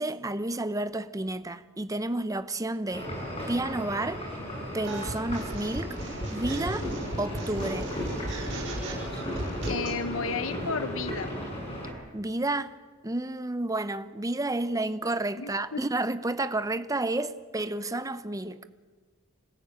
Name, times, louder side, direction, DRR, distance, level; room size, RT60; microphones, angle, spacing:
voice 1, 0.0-3.1 3.5-4.2 4.7-6.0 6.3-6.9 7.2-7.9 12.1-12.7 13.0-18.7, right 2 dB, 15° right, 0.8 m, -30 dB
sound 1, 2.9-11.9, equal, 30° left, 7.2 m, -35 dB
sound 2, 4.8-10.0, right 1 dB, 60° right, 5.8 m, -36 dB
voice 2, 9.7-11.3 15.4-15.8, left 4 dB, 70° left, 1.0 m, -32 dB
27.0 x 14.5 x 8.9 m
head